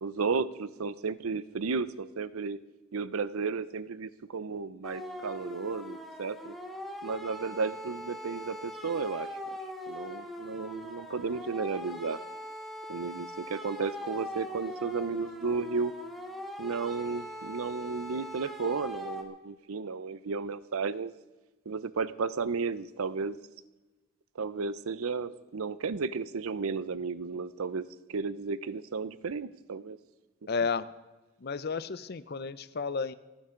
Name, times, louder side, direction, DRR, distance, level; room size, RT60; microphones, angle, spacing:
voice 1, 0.0-2.6 2.9-6.5 7.0-9.6 9.9-12.2 12.9-15.9 16.6-21.1 21.7-23.4 24.4-30.0, right 4 dB, 85° right, 16 dB, 0.6 m, -33 dB
sound 1, 4.8-19.2, left 1 dB, ahead, 1.6 m, -41 dB
voice 2, 30.5-30.9 31.4-33.1, left 5 dB, 50° left, 15 dB, 0.5 m, -32 dB
29.0 x 10.0 x 3.8 m, 1.2 s
head